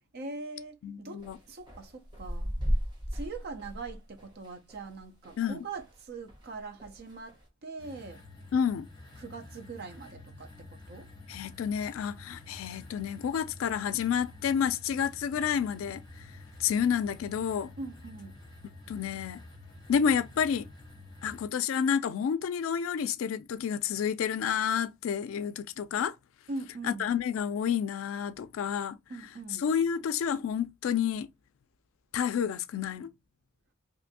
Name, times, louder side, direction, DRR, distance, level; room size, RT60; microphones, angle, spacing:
voice 1, 0.1-1.2 1.5-2.5 3.1-8.2 9.2-10.5 10.9-11.1 17.8-18.4 26.5-27.1 29.1-29.6, right 3 dB, 50° right, 0.5 m, -42 dB
voice 2, 0.8-1.4 5.4-5.6 8.5-8.9 11.3-16.3 16.6-17.7 18.9-19.4 19.9-20.7 21.2-26.2 26.8-29.0 29.6-31.3 32.1-33.1, left 7 dB, 80° left, 0.3 m, -30 dB
sound 1, 1.2-6.0 6.3-7.5, equal, 20° right, 0.9 m, -35 dB
sound 2, 7.8-21.4, left 2 dB, 20° left, 0.9 m, -49 dB
2.6 x 2.5 x 2.6 m
head